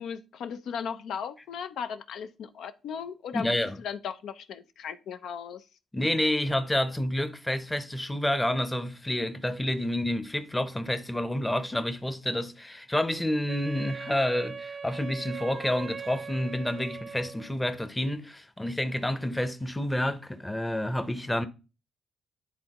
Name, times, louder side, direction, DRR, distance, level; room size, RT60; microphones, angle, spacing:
voice 1, 0.0-5.6, left 7 dB, 75° left, 0.6 m, -37 dB
voice 2, 3.3-3.7 5.9-21.5, left 1 dB, 10° left, 0.7 m, -29 dB
Wind instrument woodwind instrument, 13.5-17.6, right 5 dB, 40° right, 0.5 m, -40 dB
10.0 x 3.6 x 3.0 m
cardioid pair, 90°, 0 cm